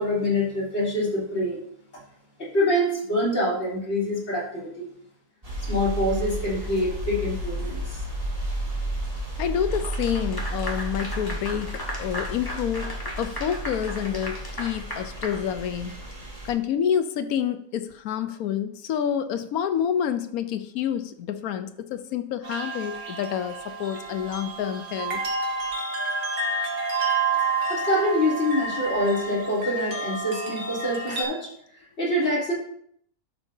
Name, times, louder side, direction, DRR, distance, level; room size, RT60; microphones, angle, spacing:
voice 1, 0.0-1.6 2.5-4.9 5.7-7.8 27.7-31.5 32.0-32.5, left 1 dB, 45° left, -7 dB, 3.6 m, -25 dB
sound 1, 5.4-16.5, right 1 dB, 25° right, 2.5 m, -33 dB
voice 2, 9.4-16.0 16.4-25.2, left 9 dB, 75° left, 10 dB, 1.1 m, -28 dB
Clapping / Applause, 9.7-16.1, left 1 dB, 15° left, 1.3 m, -36 dB
sound 2, 22.4-31.2, right 3 dB, 75° right, 1.9 m, -29 dB
11.5 x 6.8 x 2.7 m, 0.68 s
omnidirectional pair, 1.6 m